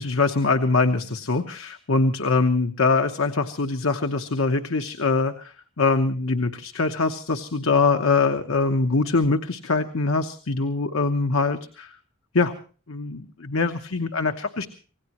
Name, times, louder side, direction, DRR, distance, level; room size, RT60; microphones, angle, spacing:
voice 1, 0.0-12.0 12.3-12.5 12.9-14.7, left 3 dB, 75° left, 6 dB, 1.0 m, -23 dB
26.0 x 18.0 x 3.0 m, 0.40 s
head